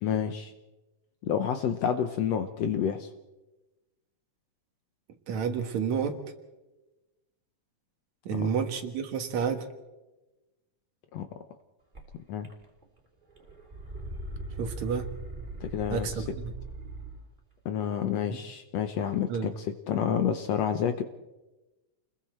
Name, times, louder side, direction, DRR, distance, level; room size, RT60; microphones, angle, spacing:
voice 1, 0.0-0.5 1.2-3.1 8.3-8.5 11.1-11.4 12.3-12.5 15.6-16.2 17.6-21.0, left 8 dB, 70° left, 8 dB, 1.7 m, -29 dB
voice 2, 5.3-6.2 8.3-9.7 14.6-15.1 15.9-16.5 18.3-18.4 19.3-19.5, right 6 dB, 65° right, 7 dB, 2.6 m, -30 dB
sound 1, 11.9-12.0 12.4-13.0 13.3-17.3, right 2 dB, 15° right, 3.0 m, -40 dB
29.0 x 21.0 x 4.5 m, 1.1 s
omnidirectional pair, 3.7 m